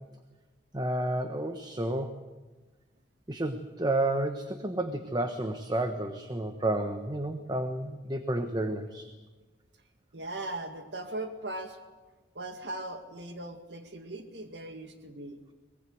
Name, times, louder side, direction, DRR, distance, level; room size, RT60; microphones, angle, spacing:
voice 1, 0.7-2.1 3.3-9.1, right 1 dB, 25° right, 7 dB, 1.2 m, -31 dB
voice 2, 10.1-11.8 12.3-15.4, right 2 dB, 70° right, 6 dB, 2.1 m, -39 dB
23.5 x 20.0 x 7.9 m, 1.2 s
head